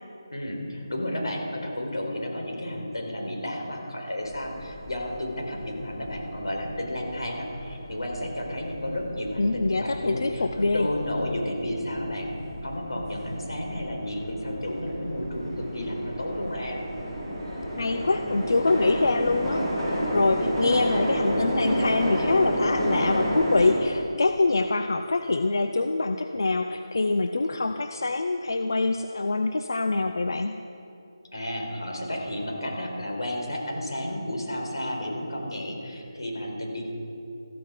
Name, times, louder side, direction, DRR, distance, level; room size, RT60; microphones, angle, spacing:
voice 1, 0.3-12.3 12.6-16.8 31.3-36.9, left 1 dB, 90° left, 1 dB, 4.3 m, -32 dB
sound 1, 4.2-23.8, equal, 5° left, 2.0 m, -31 dB
voice 2, 9.4-10.9 17.8-30.6, left 3 dB, 55° left, 7 dB, 0.6 m, -25 dB
15.0 x 14.5 x 5.0 m, 2.6 s
figure-of-eight pair, 175°, 2 cm